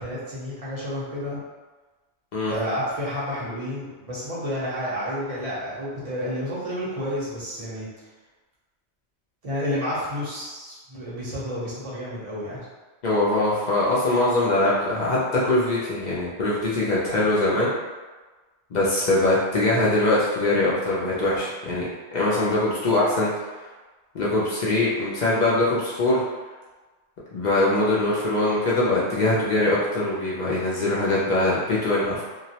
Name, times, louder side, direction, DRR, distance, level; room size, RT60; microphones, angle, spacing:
voice 1, 0.0-1.4 2.5-7.9 9.4-12.6, equal, 40° right, -7 dB, 0.7 m, -30 dB
voice 2, 13.0-17.7 18.7-23.3 24.1-26.2 27.3-32.2, left 2 dB, 60° left, -7 dB, 0.5 m, -22 dB
2.3 x 2.0 x 2.7 m, 1.3 s
omnidirectional pair, 1.2 m